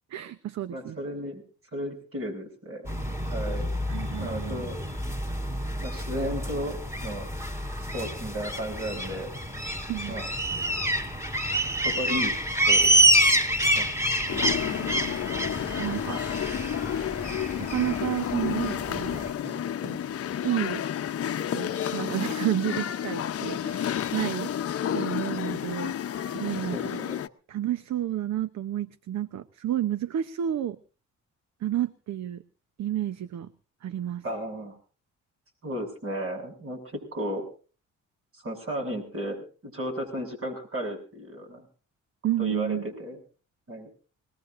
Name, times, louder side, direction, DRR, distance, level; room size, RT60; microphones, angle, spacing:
voice 1, 0.1-1.0 3.9-4.6 9.9-10.2 14.2-15.0 15.8-16.2 17.6-19.2 19.8-20.0 20.4-20.8 21.5-24.5 24.9-25.9 26.3-27.0 27.5-30.8 31.6-32.4 32.8-33.5 33.8-34.2 42.2-42.9, right 12 dB, 65° right, 13 dB, 0.9 m, -31 dB
voice 2, 0.7-1.4 1.7-2.9 3.3-3.7 4.2-4.8 5.8-7.3 7.8-9.3 10.1-10.3 11.8-12.3 12.7-13.1 13.7-13.9 19.4-19.6 26.5-27.2 34.2-34.8 35.6-37.5 38.3-41.6 42.4-43.2 43.7-43.9, equal, 45° right, 4 dB, 7.4 m, -34 dB
sound 1, 2.8-19.3, right 1 dB, 10° right, 3.2 m, -27 dB
sound 2, 14.3-27.3, left 10 dB, 50° left, 0.8 m, -31 dB
24.5 x 19.5 x 2.6 m, 0.39 s
cardioid pair, 90°, 30 cm